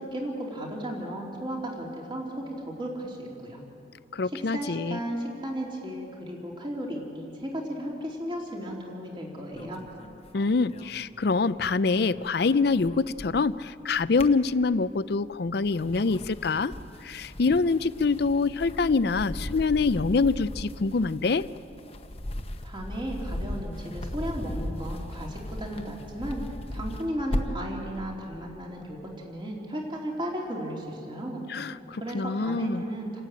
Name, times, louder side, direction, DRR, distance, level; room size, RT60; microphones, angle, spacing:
voice 1, 0.0-3.6 4.2-9.8 22.6-26.4 26.7-31.4 32.0-33.2, equal, 25° right, -1 dB, 3.1 m, -35 dB
voice 2, 4.1-5.0 10.3-16.7 17.0-21.4 31.5-32.8, left 4 dB, 55° left, 16 dB, 0.5 m, -25 dB
sound 1, 9.5-11.7 12.0-13.6 13.9-15.0 15.5-27.7, left 1 dB, 30° left, 0.9 m, -37 dB
28.0 x 12.5 x 9.0 m, 2.6 s
head